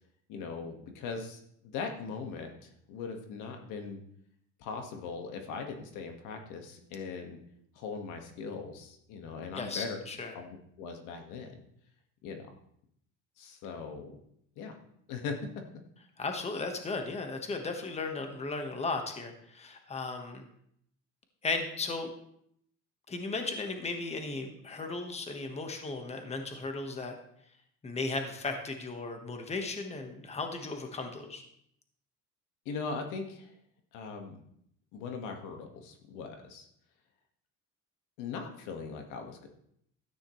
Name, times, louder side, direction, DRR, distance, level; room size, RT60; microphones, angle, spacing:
voice 1, 0.3-4.0 4.6-7.4 7.8-10.0 10.3-11.5 12.2-12.5 13.4-14.1 14.6-14.8 15.1-15.4 32.7-33.6 33.9-34.4 34.9-36.7 38.2-39.5, left 5 dB, 80° left, 4 dB, 1.8 m, -40 dB
voice 2, 9.5-10.3 16.2-20.4 21.4-22.1 23.1-27.1 27.8-31.4, left 3 dB, 20° left, 4 dB, 1.4 m, -36 dB
13.0 x 9.7 x 3.2 m, 0.71 s
cardioid pair, 125°, 30 cm